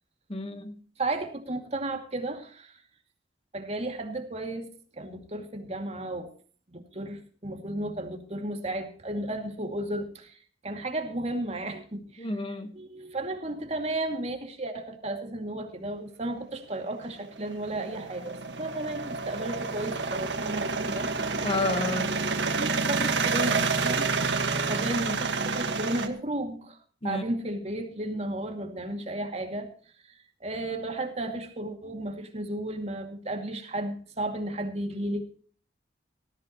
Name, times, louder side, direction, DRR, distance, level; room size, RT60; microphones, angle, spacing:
voice 1, 0.3-0.7 12.2-12.8 21.4-22.2 27.0-27.2, left 2 dB, 30° left, 1.3 m, -31 dB
voice 2, 1.0-2.8 3.5-4.7 5.0-6.3 6.7-10.4 10.6-12.3 12.7-21.1 22.6-26.8 27.0-29.7 30.0-35.4, right 1 dB, 35° right, 2.4 m, -34 dB
sound 1, 17.0-26.1, right 4 dB, 75° right, 1.7 m, -29 dB
18.5 x 14.5 x 3.0 m
head